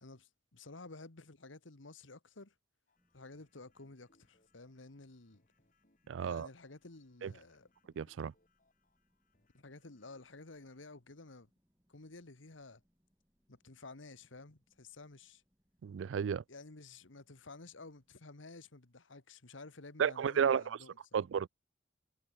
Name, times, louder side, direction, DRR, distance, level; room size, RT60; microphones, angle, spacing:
voice 1, 0.0-2.5 3.1-5.4 6.2-7.7 9.5-11.5 11.9-12.8 13.5-15.4 16.5-21.2, left 3 dB, 85° left, 1.6 m, -53 dB
sound 1, 2.9-11.0, left 2 dB, 45° left, 4.3 m, -76 dB
sound 2, 3.0-18.3, equal, 15° right, 7.0 m, -81 dB
voice 2, 6.1-6.5 7.2-7.3 8.0-8.3 15.8-16.4 20.0-20.8 21.1-21.5, right 7 dB, 75° right, 0.3 m, -32 dB
head